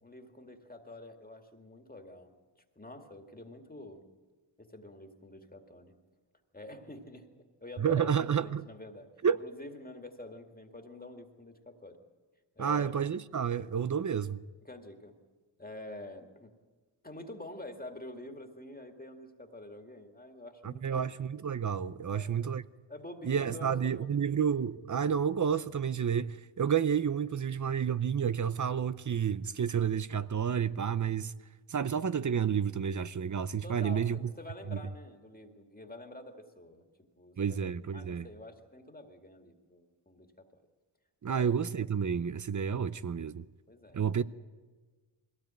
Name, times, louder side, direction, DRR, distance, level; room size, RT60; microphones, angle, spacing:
voice 1, 0.0-2.3 2.8-4.0 4.6-5.9 6.5-7.3 7.6-9.1 9.4-12.0 12.6-12.9 14.6-15.1 15.6-16.5 17.0-21.1 22.1-22.4 22.9-24.1 33.6-36.9 37.2-37.6 37.9-40.6 41.3-41.6 43.7-44.0, left 1 dB, 20° left, 2.2 m, -47 dB
voice 2, 7.8-8.6 9.2-9.4 12.6-14.4 20.6-22.6 23.2-31.3 31.7-34.3 34.7-34.8 37.4-38.3 41.2-43.5 43.9-44.2, right 7 dB, 40° right, 0.7 m, -30 dB
21.5 x 16.5 x 9.0 m
cardioid pair, 70°, 46 cm